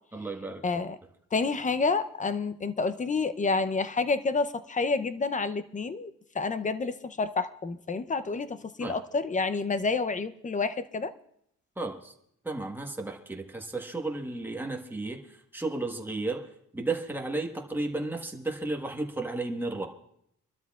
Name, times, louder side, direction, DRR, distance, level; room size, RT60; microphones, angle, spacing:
voice 1, 0.1-0.6 8.8-9.0 11.8-12.1 12.4-16.5 16.7-19.9, right 2 dB, 5° right, 2 dB, 1.3 m, -33 dB
voice 2, 0.6-1.0 1.3-11.1, left 4 dB, 25° left, 12 dB, 0.6 m, -29 dB
26.0 x 12.5 x 2.4 m, 0.73 s
cardioid pair, 135°, 31 cm